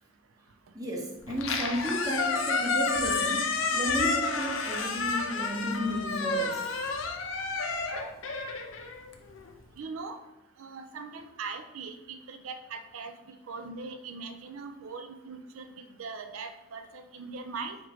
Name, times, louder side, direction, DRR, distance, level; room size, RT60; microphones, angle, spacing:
voice 1, 0.7-6.7, right 1 dB, 15° right, 0 dB, 0.7 m, -33 dB
Squeak, 1.3-9.5, left 4 dB, 65° left, 0.5 m, -30 dB
voice 2, 9.8-10.2 10.6-13.1 13.5-17.8, right 4 dB, 85° right, 7 dB, 0.5 m, -40 dB
3.6 x 3.1 x 4.7 m, 1.0 s
head